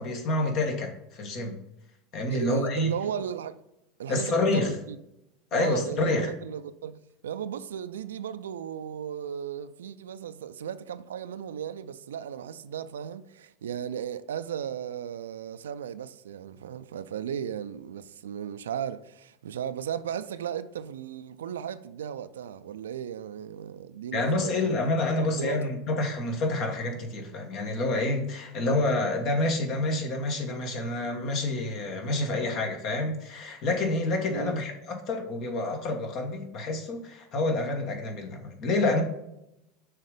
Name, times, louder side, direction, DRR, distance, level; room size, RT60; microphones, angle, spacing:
voice 1, 0.0-1.6 2.1-2.9 4.1-4.7 5.5-6.3 24.1-39.0, left 2 dB, 50° left, 1.5 m, -28 dB
voice 2, 2.3-3.6 4.0-5.0 5.5-24.7 25.3-25.7 34.3-34.6, right 9 dB, 80° right, 0.4 m, -36 dB
6.5 x 3.8 x 5.3 m
hypercardioid pair, 85°, 0 cm